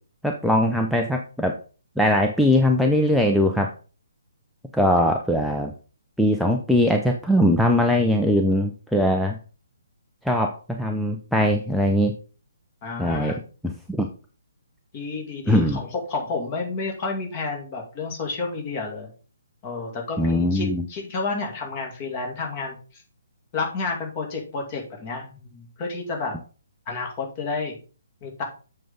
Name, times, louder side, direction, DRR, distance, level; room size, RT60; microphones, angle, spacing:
voice 1, 0.2-1.6 2.0-3.7 4.7-5.7 6.2-9.4 10.2-12.1 13.0-14.1 15.5-15.8 20.2-20.8, left 1 dB, ahead, 2 dB, 0.6 m, -21 dB
voice 2, 12.8-13.4 14.9-19.1 19.6-23.0 23.5-26.4 26.9-27.8 28.2-28.4, left 3 dB, 30° left, 1 dB, 2.6 m, -30 dB
7.7 x 6.4 x 3.8 m, 0.37 s
figure-of-eight pair, 135°, 0 cm